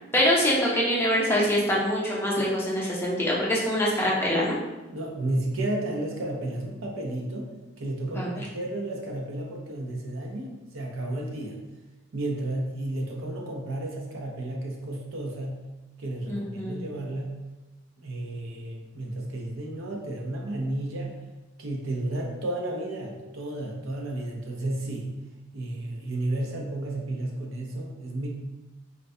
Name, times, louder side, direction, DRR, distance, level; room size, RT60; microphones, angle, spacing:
voice 1, 0.1-4.5 8.1-8.4 16.3-16.8, equal, 10° left, -5 dB, 0.5 m, -24 dB
voice 2, 4.9-7.5 7.8-11.6 12.1-15.6 16.0-17.4 18.0-21.1 21.6-25.1 25.5-28.3, right 1 dB, 85° right, 0 dB, 0.6 m, -32 dB
3.8 x 2.2 x 2.6 m, 1.1 s
head